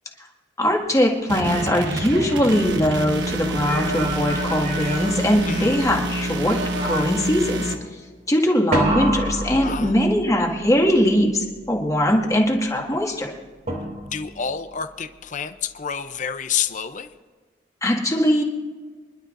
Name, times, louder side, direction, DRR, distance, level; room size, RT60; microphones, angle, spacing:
voice 1, 0.6-7.7 8.3-13.3 17.8-18.4, equal, 20° left, 0 dB, 2.0 m, -21 dB
sound 1, 1.2-3.1 3.5-6.0 6.4-7.4 8.7-10.3 13.7-14.3, right 1 dB, 50° right, 3.0 m, -28 dB
sound 2, 1.3-7.7, right 1 dB, 85° right, 1.2 m, -27 dB
voice 2, 9.6-9.9 14.0-17.1, left 7 dB, 45° left, 10 dB, 0.6 m, -28 dB
25.0 x 11.5 x 2.6 m, 1.4 s
head